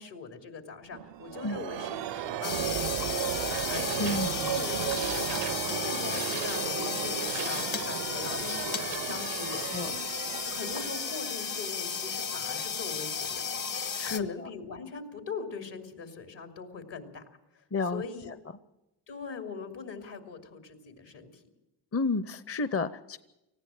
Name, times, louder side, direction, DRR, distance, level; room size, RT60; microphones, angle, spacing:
voice 1, 0.0-10.2 10.4-13.4 14.0-17.2 17.5-17.6 17.9-18.3 19.1-21.4, left 5 dB, 75° left, 4 dB, 3.1 m, -41 dB
sound 1, 0.9-12.4, right 11 dB, 80° right, 0.6 m, -35 dB
sound 2, 2.4-14.2, left 6 dB, 50° left, 1.4 m, -34 dB
voice 2, 4.0-4.3 9.4-9.9 13.9-14.5 17.7-18.4 21.9-23.2, left 3 dB, 35° left, 14 dB, 0.8 m, -32 dB
19.0 x 15.5 x 9.0 m, 0.95 s
cardioid pair, 55°, 43 cm